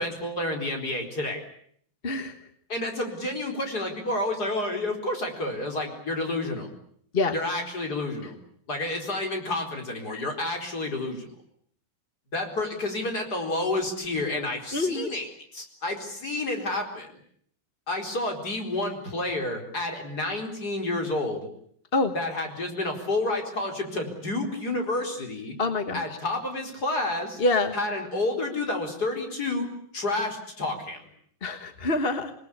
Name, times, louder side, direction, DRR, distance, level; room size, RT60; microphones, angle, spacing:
voice 1, 0.0-1.4 2.7-6.7 7.3-8.3 8.7-11.3 12.3-17.1 17.9-21.5 22.1-25.5 25.9-27.4 27.7-31.0, left 2 dB, 50° left, 3 dB, 5.1 m, -30 dB
voice 2, 14.7-15.1 21.9-22.1 25.6-26.0 27.4-27.7 31.4-32.3, left 2 dB, 30° left, 8 dB, 1.4 m, -25 dB
27.5 x 20.0 x 8.5 m, 0.64 s
omnidirectional pair, 2.2 m